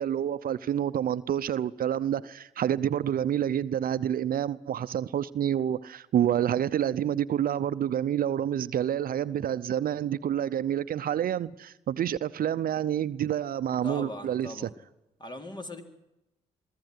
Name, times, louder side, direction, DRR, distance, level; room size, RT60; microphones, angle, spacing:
voice 1, 0.0-14.5, right 10 dB, 65° right, 0.7 m, -28 dB
voice 2, 13.8-14.7 15.2-15.8, left 1 dB, 25° left, 4.1 m, -39 dB
23.5 x 14.5 x 9.6 m
supercardioid pair, 55°, 16 cm